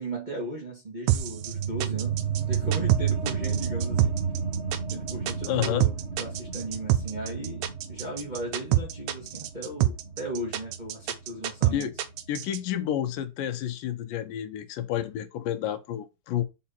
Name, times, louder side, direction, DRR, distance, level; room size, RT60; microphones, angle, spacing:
voice 1, 0.0-2.2 2.5-4.2 4.9-11.9, right 1 dB, 15° right, 2.0 m, -36 dB
sound 1, 1.1-12.6, right 13 dB, 80° right, 2.3 m, -26 dB
sound 2, 1.2-12.3, right 6 dB, 30° right, 1.5 m, -32 dB
voice 2, 5.5-5.9 11.7-11.9 12.3-16.4, left 11 dB, 85° left, 2.5 m, -30 dB
5.7 x 4.7 x 4.3 m
omnidirectional pair, 3.8 m